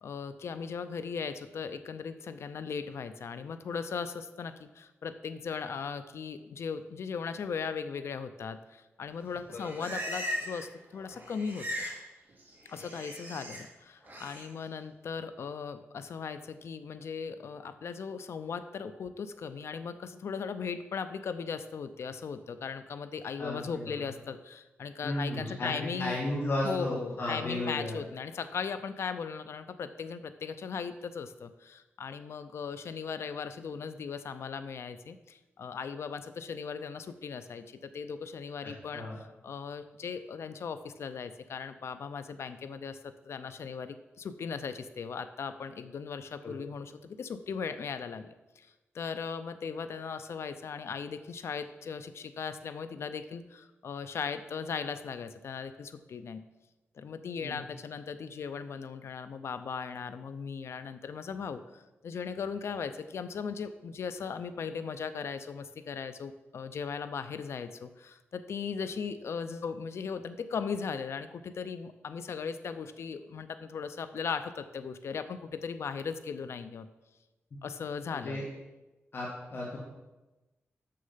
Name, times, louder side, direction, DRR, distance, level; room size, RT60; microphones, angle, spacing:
voice 1, 0.0-11.7 12.7-26.2 26.6-48.7 48.9-56.4 57.0-76.9 77.6-78.4, left 6 dB, 70° left, 10 dB, 0.5 m, -38 dB
Livestock farm animals working animals, 9.3-10.7 10.9-12.0 12.3-13.6 14.0-14.4, equal, 40° right, 3.0 m, -38 dB
voice 2, 9.5-9.9 23.4-23.9 25.0-28.0 38.6-39.2 46.4-46.5 57.4-57.6 78.1-78.4 79.1-79.8, left 1 dB, 55° left, -4 dB, 1.7 m, -34 dB
6.6 x 6.4 x 5.6 m, 1.1 s
wide cardioid pair, 105°, 5 cm